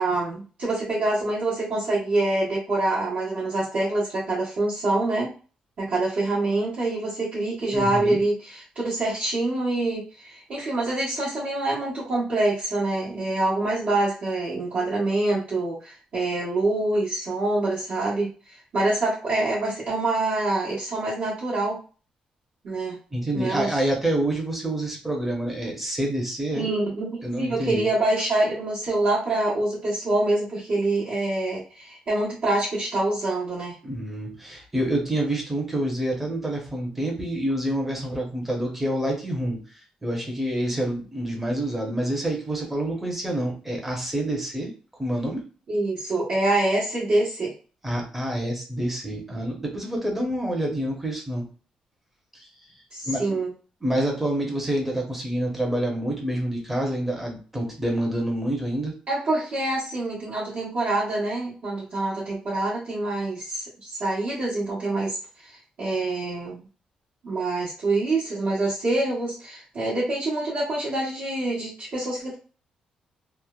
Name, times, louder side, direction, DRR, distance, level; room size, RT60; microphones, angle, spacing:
voice 1, 0.0-5.3 5.8-21.8 22.6-23.0 23.3-23.8 26.5-27.1 27.4-33.8 45.7-47.5 52.9-53.5 59.1-65.2 65.4-66.6 67.2-72.3, right 2 dB, 55° right, -9 dB, 1.1 m, -26 dB
voice 2, 7.7-8.2 23.1-26.7 27.2-27.9 33.8-39.6 40.0-44.7 45.0-45.4 47.8-51.5 52.3-52.5 53.0-53.4 53.8-58.9, right 1 dB, 10° right, 0 dB, 0.7 m, -27 dB
3.1 x 2.0 x 2.3 m, 0.37 s
cardioid pair, 160°, 2 cm